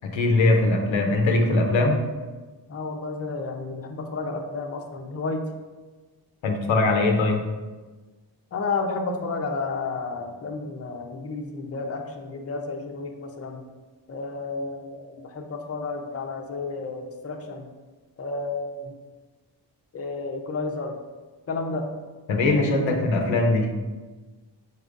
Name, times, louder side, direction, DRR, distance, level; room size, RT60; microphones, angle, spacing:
voice 1, 0.0-2.0 6.4-7.4 22.3-23.7, left 2 dB, 90° left, 3 dB, 0.7 m, -21 dB
voice 2, 2.7-5.4 8.5-13.6 14.1-17.7 18.2-18.9 19.9-21.0 21.5-21.9 22.5-23.0, left 3 dB, 30° left, 3 dB, 0.6 m, -31 dB
5.1 x 4.2 x 2.5 m, 1.3 s
cardioid pair, 70°, 45 cm